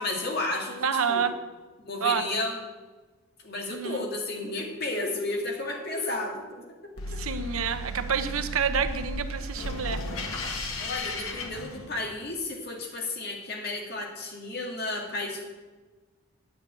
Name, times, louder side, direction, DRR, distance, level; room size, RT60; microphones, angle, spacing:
voice 1, 0.0-1.3 1.9-2.6 3.4-7.2 10.8-15.4, left 2 dB, 45° left, 1 dB, 2.0 m, -33 dB
voice 2, 0.8-1.4 2.0-2.2 3.7-4.0 7.2-10.0, right 6 dB, 80° right, 9 dB, 0.8 m, -28 dB
sound 1, 7.0-12.3, left 1 dB, 85° left, 1.6 m, -34 dB
9.5 x 6.8 x 8.5 m, 1.3 s
head